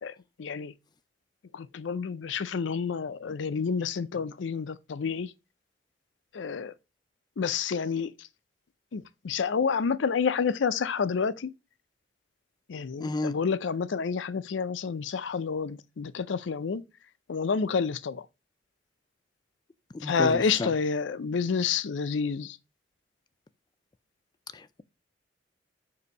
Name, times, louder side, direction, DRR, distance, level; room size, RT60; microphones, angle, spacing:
voice 1, 0.4-0.7 1.5-5.3 6.3-6.7 7.4-8.1 8.9-11.5 12.7-16.8 17.3-18.3 20.0-22.6, left 5 dB, 85° left, 0.5 m, -29 dB
voice 2, 13.0-13.3 19.9-20.7 24.5-24.8, left 2 dB, 25° left, 0.3 m, -32 dB
6.7 x 2.7 x 5.3 m
head